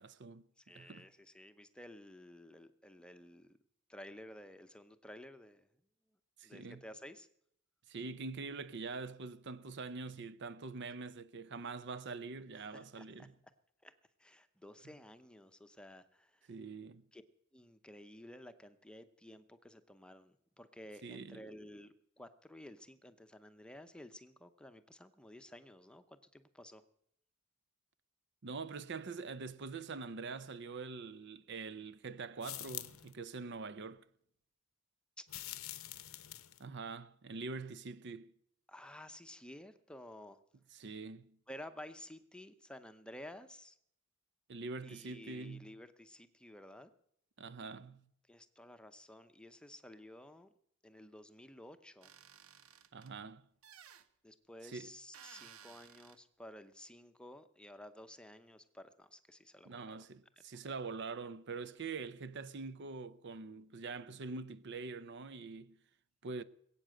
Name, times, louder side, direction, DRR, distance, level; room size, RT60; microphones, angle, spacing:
voice 1, 0.0-0.4 0.7-1.0 6.4-6.8 7.9-13.3 16.5-17.0 21.0-21.4 28.4-34.0 36.6-38.3 40.7-41.4 44.5-45.7 47.4-48.0 52.9-53.5 54.7-54.9 59.7-65.8 66.2-66.4, right 4 dB, 55° right, 0.6 m, -44 dB
voice 2, 0.6-3.5 3.9-5.7 6.4-7.3 12.6-13.3 13.8-13.9 14.2-16.5 17.1-17.2 17.5-26.8 35.2-35.3 38.7-40.4 41.5-43.8 44.8-46.9 48.3-50.5 50.8-52.1 54.2-60.1 60.5-60.6, left 1 dB, 5° left, 0.7 m, -53 dB
sound 1, 32.4-33.1 35.3-36.6, left 15 dB, 80° left, 0.8 m, -45 dB
sound 2, 52.0-53.1 53.6-54.1 55.1-56.2, right 8 dB, 85° right, 0.9 m, -57 dB
21.5 x 8.6 x 7.7 m
head